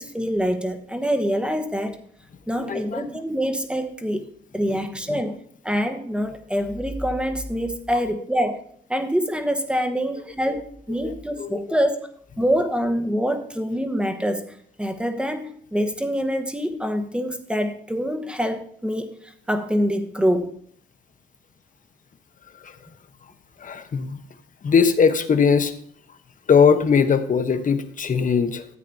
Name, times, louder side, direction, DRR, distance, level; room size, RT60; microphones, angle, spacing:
voice 1, 0.0-2.0 2.5-4.3 4.5-8.6 8.9-12.1 12.4-20.6, equal, 5° right, 6 dB, 1.2 m, -25 dB
voice 2, 2.6-3.2 4.7-4.8 5.1-5.2 10.5-10.6 11.0-11.6 22.6-22.8 23.6-24.2 24.6-25.7 26.5-28.7, left 6 dB, 40° left, 9 dB, 1.0 m, -20 dB
13.5 x 8.5 x 2.8 m, 0.65 s
cardioid pair, 90°, 20 cm